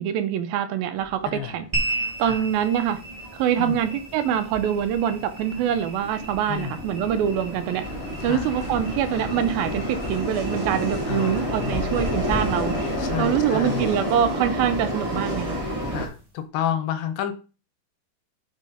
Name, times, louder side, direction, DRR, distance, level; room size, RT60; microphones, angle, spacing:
voice 1, 0.0-1.7 2.2-3.0 3.3-7.9 8.2-12.8 13.2-15.6, right 9 dB, 85° right, 2.5 m, -24 dB
sound 1, 0.9-16.1, equal, 20° right, 0.8 m, -31 dB
voice 2, 1.3-1.6 2.2-2.5 3.6-3.8 6.5-6.8 8.2-8.5 11.1-11.9 13.0-14.0 15.9-17.3, left 10 dB, 85° left, 2.7 m, -30 dB
sound 2, 1.7-16.3, right 1 dB, 50° right, 0.6 m, -37 dB
sound 3, 7.8-13.1, left 4 dB, 70° left, 2.8 m, -37 dB
6.2 x 4.2 x 5.1 m
omnidirectional pair, 4.3 m